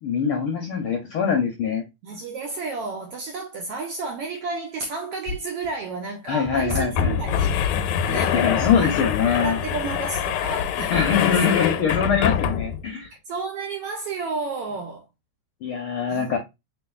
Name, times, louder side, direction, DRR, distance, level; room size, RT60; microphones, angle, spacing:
voice 1, 0.0-1.8 6.3-7.1 8.3-9.6 10.9-13.1 15.6-16.4, left 6 dB, 75° left, 1.3 m, -23 dB
voice 2, 2.0-7.7 8.1-9.0 9.4-11.4 13.3-15.0 16.1-16.4, right 4 dB, 75° right, 1.4 m, -32 dB
sound 1, 5.3-5.4 5.7-5.8 6.5-12.9, left 9 dB, 90° left, 2.0 m, -25 dB
4.4 x 4.2 x 2.3 m
omnidirectional pair, 3.4 m